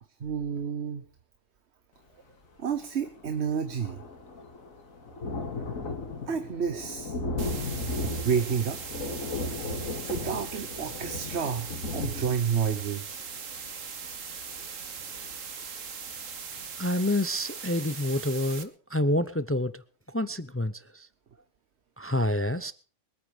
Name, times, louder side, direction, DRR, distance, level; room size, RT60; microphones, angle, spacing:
voice 1, 0.2-1.0 2.6-4.0 6.3-7.2 8.0-8.8 10.0-13.2, right 7 dB, 55° right, 1.3 m, -30 dB
Thunder, 2.7-2.8 3.0-15.7 16.2-16.3 16.6-16.7, left 2 dB, 80° left, 2.6 m, -36 dB
sound 1, 7.4-18.6, right 6 dB, 75° right, 1.8 m, -40 dB
voice 2, 16.8-19.8 20.1-21.1 22.0-22.7, left 1 dB, 20° left, 0.3 m, -28 dB
23.5 x 9.1 x 5.1 m
omnidirectional pair, 1.4 m